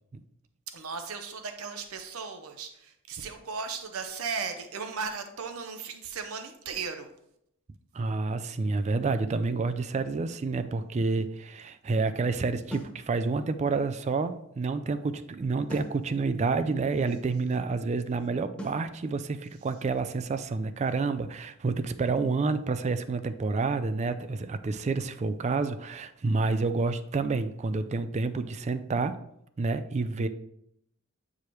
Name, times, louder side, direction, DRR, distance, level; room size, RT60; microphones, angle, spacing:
voice 1, 0.7-7.1, right 5 dB, 85° right, 7 dB, 0.7 m, -36 dB
voice 2, 7.9-29.2 29.6-30.3, right 3 dB, 30° right, 11 dB, 0.3 m, -29 dB
sound 1, 12.7-13.0 15.7-16.0 18.6-18.9, equal, 5° left, 1.1 m, -39 dB
8.3 x 4.8 x 3.1 m, 0.77 s
head